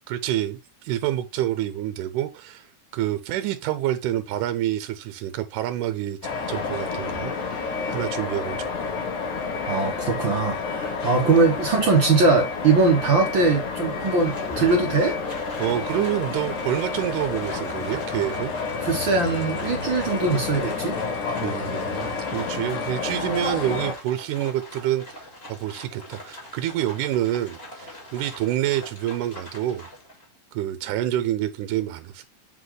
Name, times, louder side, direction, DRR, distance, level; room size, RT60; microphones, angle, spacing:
voice 1, 0.1-2.7 2.9-6.2 6.5-7.3 7.6-8.7 15.6-18.5 21.4-25.0 25.5-29.9 30.5-32.3, right 13 dB, 85° right, 2.1 m, -27 dB
sound 1, 6.2-23.9, left 4 dB, 70° left, 2.9 m, -30 dB
voice 2, 9.7-15.2 18.8-21.0, right 3 dB, 60° right, 1.3 m, -21 dB
Livestock farm animals working animals, 13.9-30.3, left 1 dB, 20° left, 2.0 m, -43 dB
7.5 x 4.0 x 3.1 m
omnidirectional pair, 3.7 m